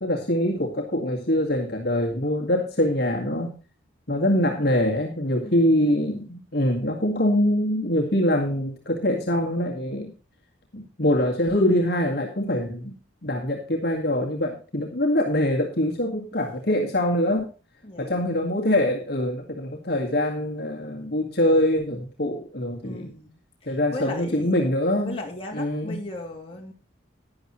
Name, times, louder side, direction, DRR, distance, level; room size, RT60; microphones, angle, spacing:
voice 1, 0.0-3.5 4.1-10.1 10.7-13.0 13.2-17.5 18.0-23.1 23.7-25.2 25.5-26.0, left 1 dB, 55° left, 0 dB, 1.9 m, -24 dB
voice 2, 5.4-5.9 17.8-18.3 22.8-23.3 23.6-24.5 25.0-26.7, left 2 dB, 30° left, -1 dB, 2.7 m, -36 dB
12.0 x 10.5 x 3.1 m, 0.34 s
head